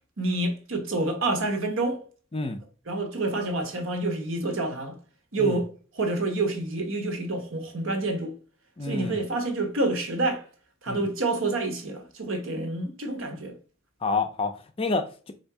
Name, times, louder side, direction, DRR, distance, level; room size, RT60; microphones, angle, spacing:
voice 1, 0.2-2.0 2.9-4.9 5.3-5.7 5.9-8.3 8.8-10.4 10.8-13.5, right 2 dB, 70° right, 1.1 m, -28 dB
voice 2, 8.8-9.2 10.9-11.0 14.0-15.3, left 3 dB, 25° left, 0.5 m, -29 dB
3.6 x 2.7 x 4.6 m
head